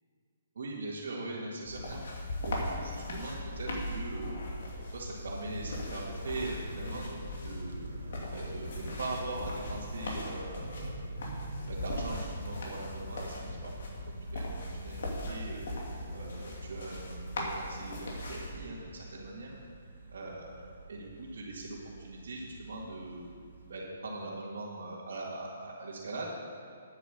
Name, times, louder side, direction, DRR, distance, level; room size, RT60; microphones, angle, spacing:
voice 1, 0.6-2.0 2.4-4.4 4.9-7.8 8.3-11.0 11.7-13.7 14.1-15.6 16.1-19.6 20.1-20.5 20.9-23.3 23.7-26.3, right 2 dB, 70° right, -7 dB, 2.0 m, -41 dB
sound 1, 1.6-18.5, left 1 dB, 60° left, 2.5 m, -39 dB
sound 2, 6.0-23.8, right 2 dB, 90° right, 1.7 m, -48 dB
9.7 x 8.1 x 6.7 m, 2.3 s
hypercardioid pair, 165°, 0 cm